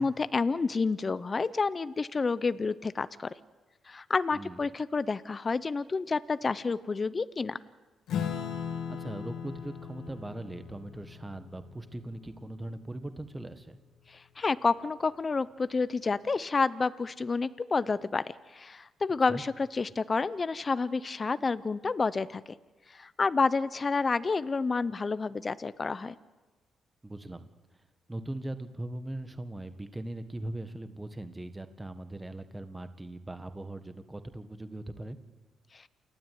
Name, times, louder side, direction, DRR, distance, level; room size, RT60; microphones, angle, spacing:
voice 1, 0.0-3.3 3.9-7.6 14.1-22.4 22.9-26.1 35.7-35.9, left 4 dB, 30° left, 15 dB, 0.7 m, -29 dB
Acoustic guitar / Strum, 8.1-12.9, left 8 dB, 80° left, 2.6 m, -38 dB
voice 2, 8.9-13.8 19.3-19.4 27.0-27.5 28.1-35.2, right 1 dB, 15° right, 9 dB, 1.5 m, -40 dB
28.5 x 12.5 x 9.5 m, 1.2 s
cardioid pair, 90°, 0 cm